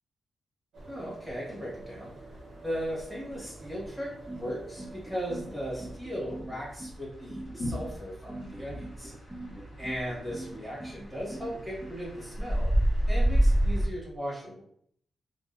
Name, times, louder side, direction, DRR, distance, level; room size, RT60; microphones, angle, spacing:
sound 1, 0.7-6.0, right 3 dB, 80° right, 0.4 m, -50 dB
sound 2, 0.8-13.9, right 1 dB, 70° left, 0.8 m, -32 dB
voice 1, 0.9-2.1 2.6-9.1 9.8-12.7 13.0-14.6, equal, 5° left, -6 dB, 1.1 m, -37 dB
sound 3, 4.3-11.9, right 1 dB, 10° right, 0.4 m, -42 dB
2.6 x 2.0 x 2.3 m, 0.65 s
wide cardioid pair, 130°, 0 cm